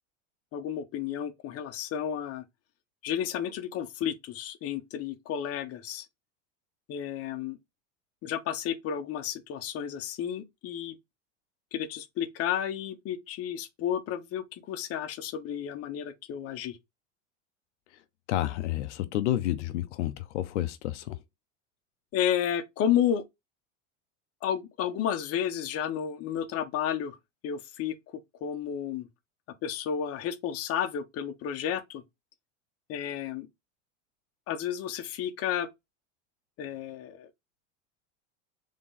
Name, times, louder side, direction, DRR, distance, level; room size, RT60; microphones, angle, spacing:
voice 1, 0.5-2.4 3.0-6.0 6.9-7.6 8.2-10.9 11.7-16.8 22.1-23.2 24.4-27.2 27.4-27.9 28.4-29.1 29.6-32.0 32.9-33.5 34.5-35.7 36.6-37.3, left 9 dB, 45° left, 1.1 m, -32 dB
voice 2, 18.3-21.2, left 13 dB, 90° left, 0.7 m, -30 dB
3.7 x 3.6 x 4.0 m
supercardioid pair, 115°, 34 cm